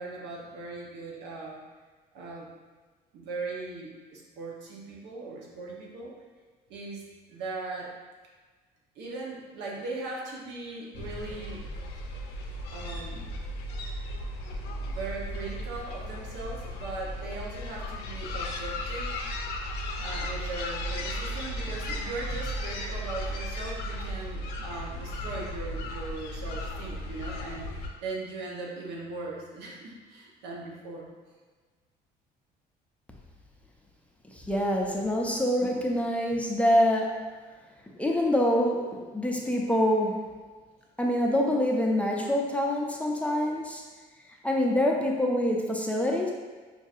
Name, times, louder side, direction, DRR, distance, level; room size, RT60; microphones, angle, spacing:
voice 1, 0.0-1.6 2.1-2.5 3.1-6.1 6.7-7.9 9.0-11.6 12.7-13.3 14.8-19.1 20.0-31.1, right 3 dB, 85° right, -3 dB, 0.8 m, -39 dB
sound 1, 10.9-27.9, left 1 dB, 75° left, 0.6 m, -35 dB
voice 2, 34.3-37.3 38.0-40.3 41.0-43.8 44.3-46.3, left 1 dB, 10° left, -1 dB, 0.4 m, -26 dB
4.6 x 2.6 x 2.4 m, 1.4 s
cardioid pair, 110°, 17 cm